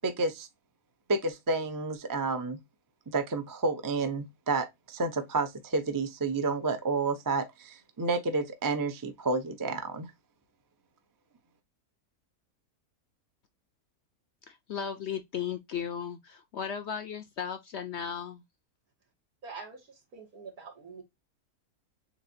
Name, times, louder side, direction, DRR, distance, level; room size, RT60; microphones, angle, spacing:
voice 1, 0.0-0.5 1.1-2.6 3.1-10.1, right 3 dB, 25° right, 0.5 m, -30 dB
voice 2, 14.5-18.4, left 8 dB, 60° left, 0.7 m, -36 dB
voice 3, 19.4-19.8 20.1-21.0, right 4 dB, 75° right, 2.5 m, -44 dB
7.1 x 2.6 x 2.7 m
omnidirectional pair, 1.6 m